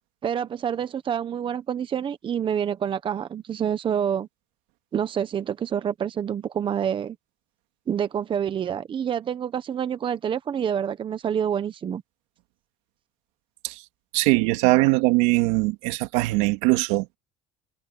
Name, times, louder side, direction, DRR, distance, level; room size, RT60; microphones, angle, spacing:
voice 1, 0.2-4.3 4.9-7.2 7.9-12.0, right 8 dB, 30° right, 1.0 m, -27 dB
voice 2, 14.1-17.2, right 22 dB, 85° right, 2.5 m, -21 dB
cardioid pair, 135°, 17 cm